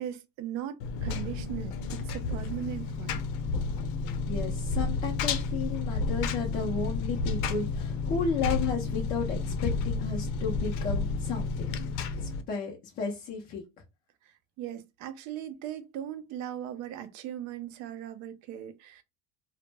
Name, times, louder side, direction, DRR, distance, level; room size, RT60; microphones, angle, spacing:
voice 1, 0.0-3.2 14.2-19.0, right 11 dB, 45° right, 0.4 m, -39 dB
Engine, 0.8-12.4, left 4 dB, 70° left, 0.6 m, -31 dB
voice 2, 4.3-11.7 12.2-13.6, left 5 dB, 25° left, 0.3 m, -33 dB
2.1 x 2.0 x 3.2 m
cardioid pair, 150°, 41 cm